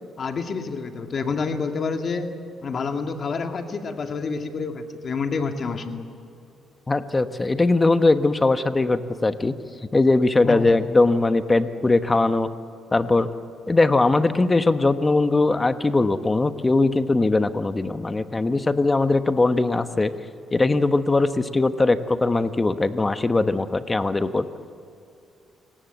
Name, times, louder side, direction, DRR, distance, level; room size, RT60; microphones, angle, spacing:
voice 1, 0.2-2.3 2.6-6.1 10.4-10.7, left 4 dB, 50° left, 5 dB, 2.0 m, -28 dB
voice 2, 6.9-9.5 9.9-12.5 12.9-13.3 13.7-20.1 20.5-24.5, left 2 dB, 20° left, 10 dB, 1.2 m, -20 dB
29.0 x 18.0 x 8.2 m, 2.5 s
cardioid pair, 90°, 0 cm